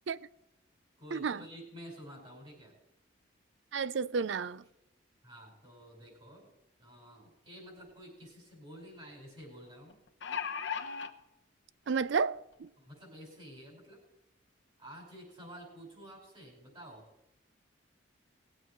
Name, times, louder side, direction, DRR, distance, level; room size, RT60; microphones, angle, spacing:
voice 1, 1.0-2.8 5.2-6.5 6.8-10.0 12.8-14.0 14.8-17.1, equal, 25° right, 5.3 m, -50 dB
voice 2, 3.7-4.6 11.9-12.7, right 5 dB, 65° right, 0.4 m, -31 dB
sound 1, 7.8-7.9 8.2-8.3 9.9-11.1 12.0-12.1 12.5-12.6, left 6 dB, 65° left, 1.0 m, -36 dB
20.0 x 7.7 x 4.6 m
head